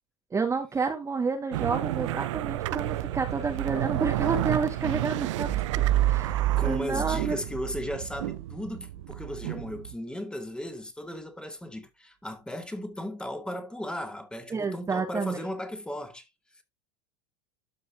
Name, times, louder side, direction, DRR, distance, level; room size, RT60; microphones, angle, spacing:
voice 1, 0.3-5.5 6.0-7.4 14.5-15.4, right 4 dB, 20° right, 1.7 m, -30 dB
sound 1, 1.5-9.9, right 14 dB, 75° right, 0.7 m, -32 dB
sound 2, 5.4-8.3, right 14 dB, 35° right, 0.6 m, -27 dB
voice 2, 6.6-16.3, left 1 dB, 5° left, 2.4 m, -36 dB
13.0 x 5.5 x 2.8 m
hypercardioid pair, 105°, 16 cm